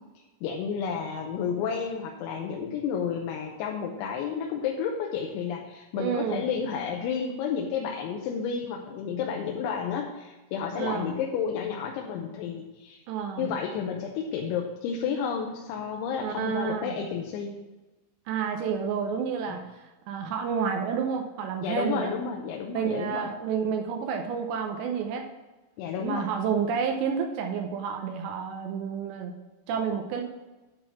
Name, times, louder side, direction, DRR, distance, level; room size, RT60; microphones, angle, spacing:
voice 1, 0.2-13.0 13.4-17.5 19.5-19.6 21.6-23.3 25.8-26.3, left 6 dB, 85° left, 0 dB, 3.1 m, -31 dB
voice 2, 5.9-6.4 10.8-11.2 13.1-13.5 16.2-17.0 18.3-22.1 22.7-25.2 26.0-29.3 29.7-30.2, right 6 dB, 80° right, 3 dB, 2.7 m, -30 dB
10.5 x 3.8 x 7.0 m, 1.1 s
omnidirectional pair, 5.3 m